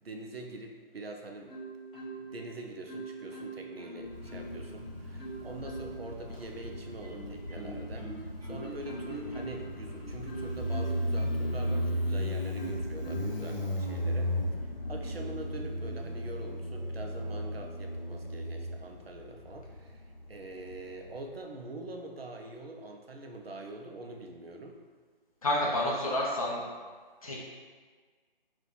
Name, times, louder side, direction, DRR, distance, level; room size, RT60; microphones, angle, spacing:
voice 1, 0.0-1.6 1.9-24.8, right 2 dB, 85° right, 2 dB, 0.6 m, -44 dB
Marimba xylophone, 1.5-2.5 2.9-4.7 5.2-6.1 6.6-12.0 12.6-13.4 14.0-14.2, right 2 dB, 5° left, 0.7 m, -43 dB
Motorcycle, 4.0-21.2, equal, 65° left, 0.9 m, -35 dB
voice 2, 25.4-26.6 27.2-27.5, left 1 dB, 40° left, -4 dB, 0.6 m, -29 dB
2.5 x 2.4 x 3.7 m, 1.5 s
figure-of-eight pair, 145°, 29 cm